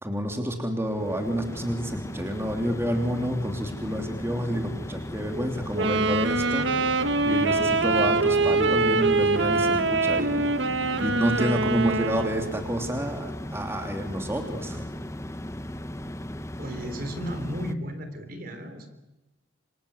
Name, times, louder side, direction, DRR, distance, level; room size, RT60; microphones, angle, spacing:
voice 1, 0.0-14.9, equal, 15° right, 3 dB, 3.1 m, -29 dB
sound 1, 0.7-17.7, left 1 dB, 15° left, 1.0 m, -37 dB
Wind instrument woodwind instrument, 5.7-12.6, right 3 dB, 70° right, 1.5 m, -24 dB
voice 2, 16.6-18.9, equal, 50° right, 8 dB, 3.6 m, -34 dB
28.0 x 26.0 x 8.2 m, 0.98 s
head